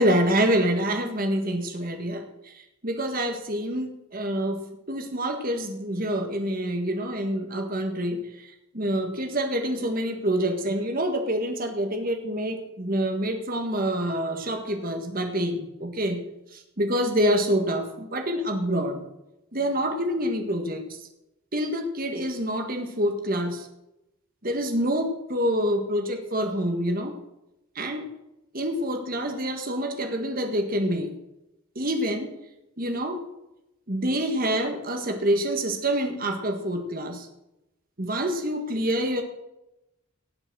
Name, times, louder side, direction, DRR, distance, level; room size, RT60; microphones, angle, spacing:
voice 1, 0.0-4.6 4.9-16.2 16.5-19.0 19.5-20.9 21.5-23.7 24.4-27.1 27.7-28.0 28.5-31.1 31.7-32.3 32.8-33.2 33.9-37.3 38.0-39.2, equal, 45° right, 5 dB, 1.7 m, -27 dB
18.0 x 6.1 x 6.3 m, 0.91 s
head